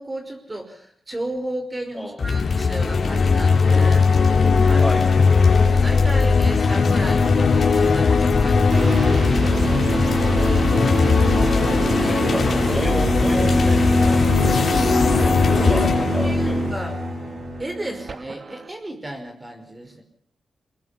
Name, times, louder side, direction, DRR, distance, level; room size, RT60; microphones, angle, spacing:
voice 1, 0.0-5.0 5.4-10.8 12.0-12.3 15.5-15.9 16.2-16.9 17.6-20.0, right 1 dB, 20° right, 5 dB, 5.4 m, -34 dB
voice 2, 2.0-2.4 4.8-5.0 11.4-14.8 15.2-16.6, left 1 dB, 5° left, 4 dB, 5.4 m, -31 dB
sound 1, 2.2-17.6, left 4 dB, 55° left, 4.5 m, -18 dB
sound 2, 8.7-18.7, right 4 dB, 50° right, 2.1 m, -26 dB
23.5 x 21.0 x 6.0 m, 0.65 s
cardioid pair, 85°, 0 cm